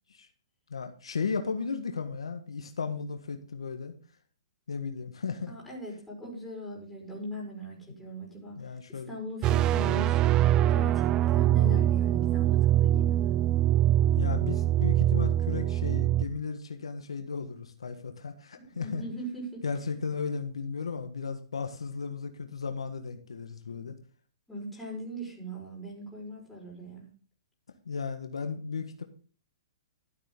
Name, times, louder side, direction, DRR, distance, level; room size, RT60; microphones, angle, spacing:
voice 1, 0.7-3.9 4.7-5.5 8.6-9.1 14.1-19.0 19.6-24.0 27.8-29.0, left 5 dB, 90° left, 7 dB, 1.4 m, -35 dB
voice 2, 5.5-8.6 8.9-13.4 18.6-19.6 24.5-27.1, right 1 dB, 5° left, -4 dB, 4.9 m, -40 dB
sound 1, 9.4-16.3, right 12 dB, 25° right, 0.4 m, -24 dB
12.5 x 7.5 x 3.8 m, 0.41 s
hypercardioid pair, 140°, 3 cm